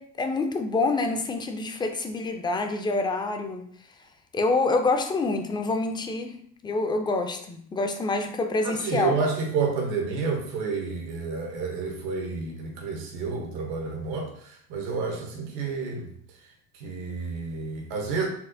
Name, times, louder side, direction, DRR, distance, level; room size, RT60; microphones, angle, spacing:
voice 1, 0.0-3.6 4.3-6.4 6.6-9.2, left 3 dB, 15° left, 5 dB, 0.3 m, -26 dB
voice 2, 8.6-16.1 16.7-18.3, right 4 dB, 80° right, 1 dB, 0.9 m, -30 dB
4.2 x 2.1 x 2.6 m, 0.62 s
supercardioid pair, 95°, 34 cm